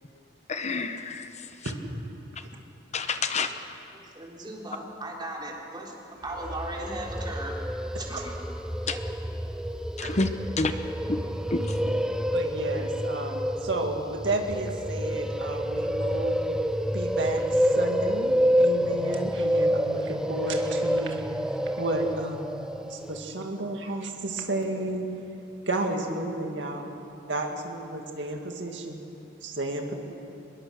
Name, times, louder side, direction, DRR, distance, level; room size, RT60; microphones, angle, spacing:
voice 1, 0.5-1.3 2.9-3.5 8.9-9.0 10.0-10.3 10.6-10.7 11.1-11.2 11.5-11.6, left 3 dB, 40° left, 8 dB, 0.9 m, -27 dB
voice 2, 3.9-5.9 6.2-7.6 8.0-8.3, right 1 dB, 25° right, -2 dB, 3.8 m, -37 dB
sound 1, 6.3-23.3, equal, 5° right, 0.5 m, -28 dB
voice 3, 12.3-16.4 16.9-21.2 21.8-22.4 22.9-25.1 25.7-26.9 27.3-29.0 29.4-29.9, right 2 dB, 70° right, 2 dB, 2.2 m, -32 dB
23.5 x 21.5 x 6.5 m, 2.7 s
head